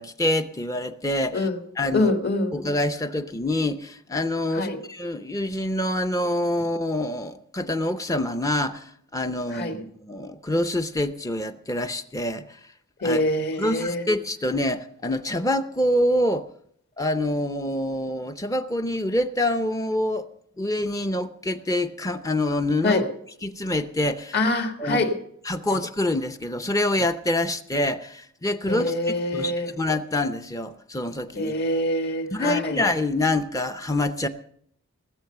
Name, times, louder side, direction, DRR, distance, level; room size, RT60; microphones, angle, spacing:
voice 1, 0.0-1.5 1.8-2.1 2.5-12.5 13.0-13.2 13.6-16.5 17.0-20.3 20.6-23.0 23.4-24.4 24.8-25.0 25.5-31.5 32.3-34.3, left 1 dB, 15° left, 0.6 m, -26 dB
voice 2, 1.9-2.5 4.5-4.8 9.5-9.8 13.0-14.0 22.8-23.1 24.3-25.1 28.7-29.7 31.4-32.8, left 2 dB, 50° left, 1.8 m, -25 dB
19.0 x 7.9 x 6.7 m
head